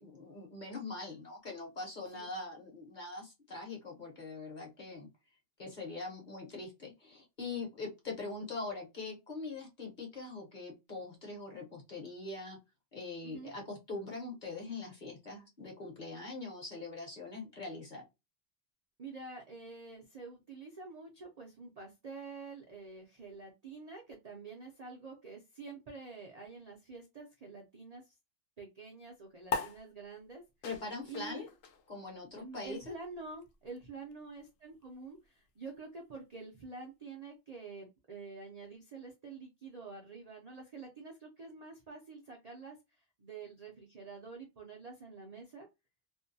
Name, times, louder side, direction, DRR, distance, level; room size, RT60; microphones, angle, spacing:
voice 1, 0.0-5.1 5.6-12.6 12.9-18.0 30.6-31.5 31.9-32.8, left 3 dB, 40° left, 0 dB, 0.9 m, -42 dB
voice 2, 19.0-28.1 28.6-30.4 31.0-31.5 32.4-45.7, right 4 dB, 50° right, 0 dB, 0.4 m, -48 dB
sound 1, 29.5-36.3, left 5 dB, 80° left, 1.0 m, -44 dB
2.6 x 2.2 x 2.6 m, 0.23 s
omnidirectional pair, 1.3 m